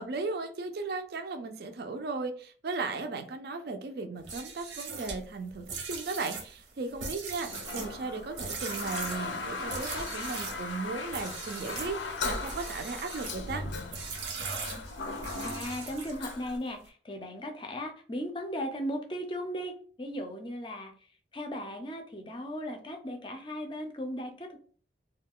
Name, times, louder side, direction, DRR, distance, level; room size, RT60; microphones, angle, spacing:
voice 1, 0.0-13.6, right 3 dB, 55° right, 6 dB, 0.4 m, -36 dB
sound 1, 4.2-10.6 11.1-12.0 12.4-13.4 13.9-16.3, right 4 dB, 85° right, 0.8 m, -40 dB
Toilet flush, 7.5-16.6, left 3 dB, 80° left, 0.5 m, -38 dB
voice 2, 15.4-20.9 21.3-24.6, equal, 25° left, 4 dB, 0.4 m, -37 dB
2.3 x 2.2 x 3.6 m, 0.43 s
head